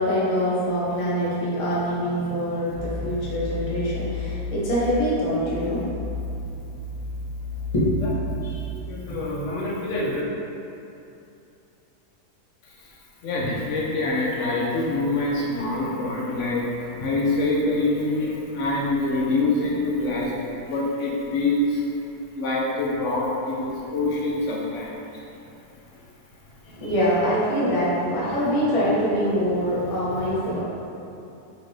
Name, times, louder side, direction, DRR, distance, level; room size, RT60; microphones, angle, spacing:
voice 1, 0.0-5.8 7.7-8.6 26.8-30.6, equal, 30° left, -8 dB, 0.6 m, -24 dB
sound 1, 2.7-8.7, left 2 dB, 75° right, 1.0 m, -32 dB
voice 2, 8.9-10.2 13.2-20.3 20.6-21.8 22.4-24.9, left 2 dB, 65° left, -4 dB, 0.8 m, -25 dB
4.3 x 2.5 x 3.1 m, 2.8 s
omnidirectional pair, 1.7 m